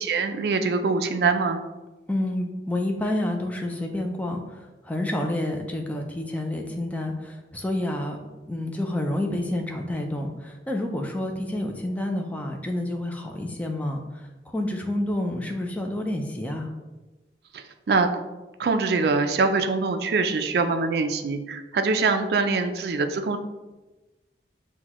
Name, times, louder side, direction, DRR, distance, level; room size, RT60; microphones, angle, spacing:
voice 1, 0.0-1.6 17.5-18.1 18.6-23.4, right 4 dB, 60° right, 7 dB, 0.3 m, -24 dB
voice 2, 2.1-8.2 8.5-16.7, left 1 dB, 10° left, 2 dB, 0.4 m, -29 dB
5.7 x 2.2 x 2.9 m, 1.1 s
head